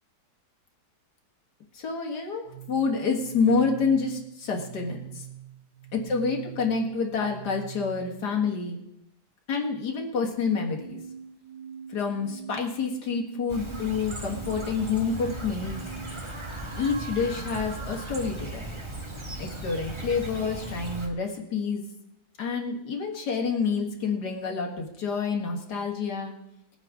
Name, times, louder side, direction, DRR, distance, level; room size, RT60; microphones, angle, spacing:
voice 1, 1.7-5.2 5.9-8.8 9.5-11.0 11.9-15.8 16.7-18.7 19.4-21.8 22.4-26.3, left 5 dB, 70° left, 0 dB, 2.2 m, -28 dB
sound 1, 2.5-8.4 10.5-16.4, right 9 dB, 90° right, 1.6 m, -44 dB
Chirp tweet, 13.5-21.1, right 2 dB, 20° right, 1.4 m, -37 dB
19.0 x 8.9 x 3.7 m, 0.84 s
omnidirectional pair, 1.9 m